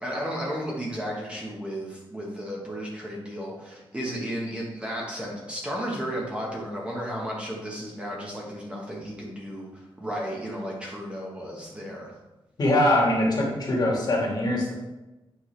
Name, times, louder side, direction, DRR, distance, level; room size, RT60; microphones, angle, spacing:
voice 1, 0.0-12.1, equal, 10° right, -3 dB, 1.3 m, -33 dB
voice 2, 12.6-14.7, left 1 dB, 45° left, -3 dB, 2.0 m, -22 dB
8.5 x 4.8 x 3.3 m, 1.0 s
wide cardioid pair, 125°, 9 cm